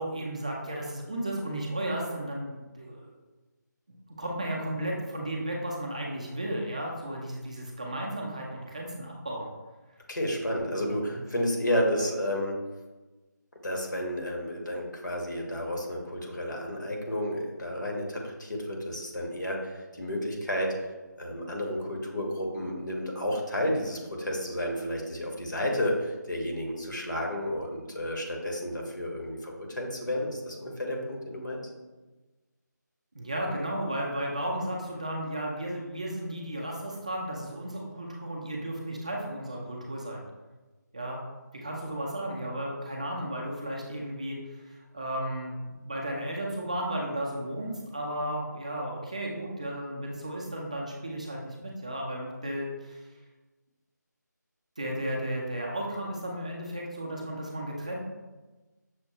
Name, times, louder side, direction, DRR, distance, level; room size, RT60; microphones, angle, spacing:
voice 1, 0.0-3.1 4.2-9.5 10.8-11.2 33.1-40.2 40.9-41.2 41.5-53.0 54.8-58.0, right 1 dB, 20° right, -2 dB, 0.3 m, -34 dB
voice 2, 10.1-12.6 13.6-20.7 21.2-31.6, equal, 75° left, 0 dB, 1.1 m, -31 dB
6.2 x 2.2 x 2.8 m, 1.2 s
figure-of-eight pair, 160°, 10 cm